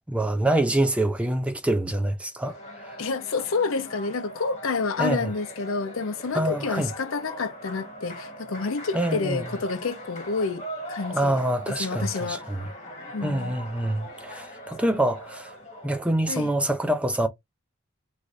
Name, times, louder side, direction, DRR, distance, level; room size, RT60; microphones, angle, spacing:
voice 1, 0.1-2.5 2.8-3.0 5.0-5.3 6.3-6.9 8.9-9.4 11.1-12.6 13.2-15.5 15.8-17.3, right 1 dB, 5° right, 0.3 m, -25 dB
sound 1, 2.4-16.1, equal, 30° left, 1.6 m, -41 dB
voice 2, 3.0-11.4 11.8-12.4 13.1-13.6 16.3-16.5, left 4 dB, 65° left, 0.6 m, -29 dB
3.2 x 2.5 x 2.5 m
head